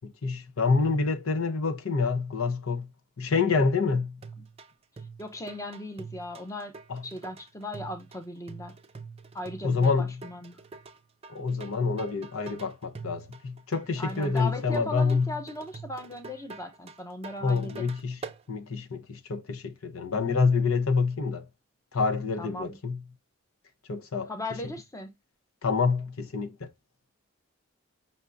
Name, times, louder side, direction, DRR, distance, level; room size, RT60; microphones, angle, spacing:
voice 1, 0.0-2.9 3.2-4.2 6.9-7.0 9.6-10.2 11.3-15.4 17.4-18.2 18.5-21.5 21.9-23.0 23.9-24.3 25.6-26.7, left 4 dB, 80° left, 0.8 m, -27 dB
sound 1, 4.2-18.4, right 4 dB, 30° right, 0.4 m, -45 dB
voice 2, 5.2-6.8 7.0-8.7 9.3-10.6 14.0-17.9 22.4-22.8 24.3-25.1, left 1 dB, 15° left, 0.6 m, -37 dB
5.6 x 3.5 x 2.5 m
head